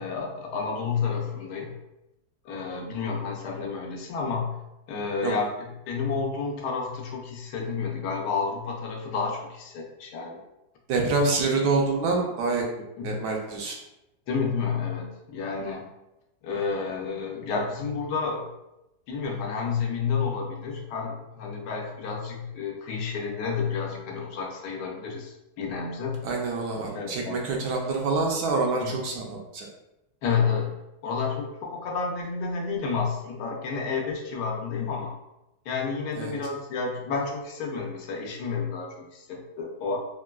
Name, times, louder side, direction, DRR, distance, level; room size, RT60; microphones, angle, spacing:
voice 1, 0.0-1.7 2.4-4.6 4.9-10.4 11.2-11.3 13.0-13.1 14.3-15.9 16.4-18.5 19.1-26.2 26.9-27.6 28.8-28.9 30.2-30.7 31.0-35.1 35.6-40.0, left 5 dB, 85° left, 0 dB, 1.2 m, -30 dB
voice 2, 10.9-12.6 13.0-13.8 26.2-29.7 36.2-36.3, right 3 dB, 75° right, 0 dB, 1.1 m, -26 dB
3.6 x 2.2 x 2.3 m, 0.90 s
omnidirectional pair, 1.8 m